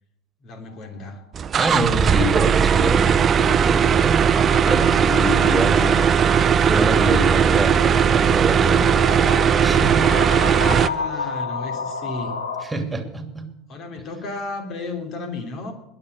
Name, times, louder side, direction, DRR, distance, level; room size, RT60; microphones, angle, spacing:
voice 1, 0.4-1.2 10.7-12.4 13.7-15.7, left 3 dB, 45° left, 6 dB, 3.2 m, -33 dB
sound 1, 0.7-0.9 2.9-12.6, left 5 dB, 80° left, 1.6 m, -32 dB
sound 2, 1.3-10.9, right 7 dB, 35° right, 0.6 m, -18 dB
voice 2, 1.5-4.2 4.7-6.1 6.4-8.9 9.6-10.1 12.6-13.4, right 1 dB, 10° right, 7 dB, 2.8 m, -26 dB
20.5 x 7.5 x 6.7 m, 0.84 s
hypercardioid pair, 80°, 0 cm